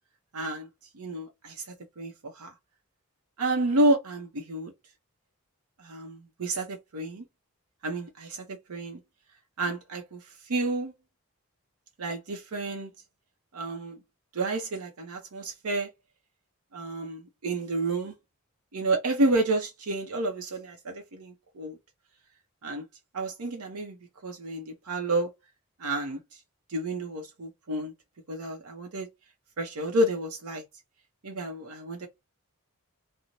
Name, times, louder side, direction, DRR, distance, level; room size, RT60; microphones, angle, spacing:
voice 1, 0.3-0.7 0.9-1.6 2.0-2.5 3.4-4.7 5.8-7.2 7.8-9.0 9.6-10.2 10.5-10.9 12.0-12.9 13.5-14.0 14.3-15.9 16.7-18.1 18.7-21.8 22.6-22.8 23.1-24.0 24.2-25.3 25.8-26.2 26.7-27.9 28.3-29.1 29.6-30.6 31.2-32.1, right 2 dB, 85° right, 0.7 m, -30 dB
2.5 x 2.1 x 2.9 m
head